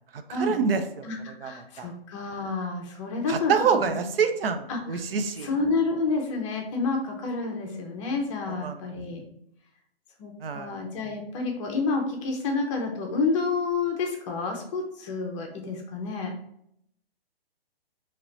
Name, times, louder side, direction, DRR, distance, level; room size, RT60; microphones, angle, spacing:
voice 1, 0.1-1.9 3.3-5.5 8.5-8.8 10.4-10.8, right 6 dB, 65° right, 8 dB, 0.5 m, -27 dB
voice 2, 1.0-4.0 4.7-5.0 5.4-9.2 10.2-16.3, left 4 dB, 30° left, 2 dB, 0.7 m, -29 dB
3.1 x 2.9 x 3.9 m, 0.72 s
hypercardioid pair, 140°, 31 cm